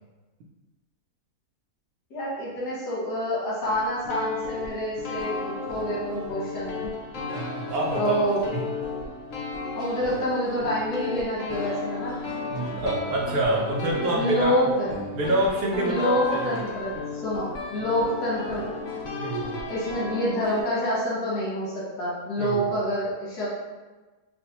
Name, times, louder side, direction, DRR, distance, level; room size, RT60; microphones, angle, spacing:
voice 1, 2.1-6.9 8.0-8.4 9.7-12.2 14.2-14.9 15.9-18.7 19.7-23.5, equal, 85° left, -7 dB, 1.6 m, -27 dB
sound 1, 3.6-20.6, left 3 dB, 60° left, 0.9 m, -34 dB
voice 2, 7.3-8.2 8.5-8.6 12.5-14.5 15.1-16.6 19.2-19.6 22.4-22.6, right 1 dB, 75° right, -4 dB, 1.0 m, -26 dB
5.2 x 2.1 x 2.8 m, 1.2 s
omnidirectional pair, 1.7 m